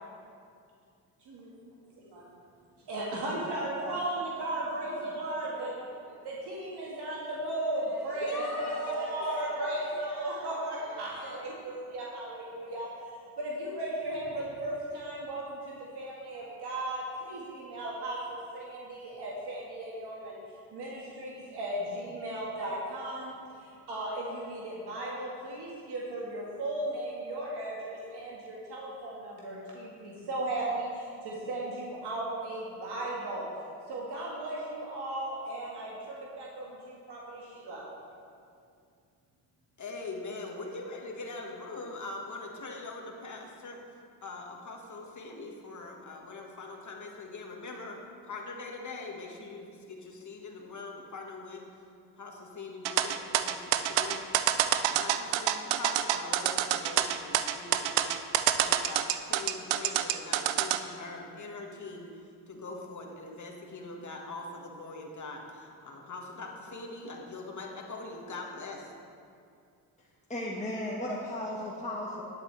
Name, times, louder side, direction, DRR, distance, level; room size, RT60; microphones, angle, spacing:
voice 1, 1.3-2.2 2.9-5.8 6.2-12.9 13.4-20.4 20.7-23.3 23.6-33.5 33.9-37.8, right 1 dB, 65° right, -4 dB, 1.7 m, -36 dB
voice 2, 8.2-9.3 39.8-43.8 44.2-48.0 48.3-51.6 52.2-54.2 54.6-58.2 58.5-62.1 62.5-68.9, left 3 dB, 40° left, 0 dB, 1.6 m, -42 dB
sound 1, 52.8-60.8, right 12 dB, 85° right, 0.5 m, -27 dB
voice 3, 70.3-72.2, left 1 dB, 15° left, -4 dB, 1.4 m, -35 dB
11.0 x 8.2 x 3.3 m, 2.4 s
supercardioid pair, 65°, 43 cm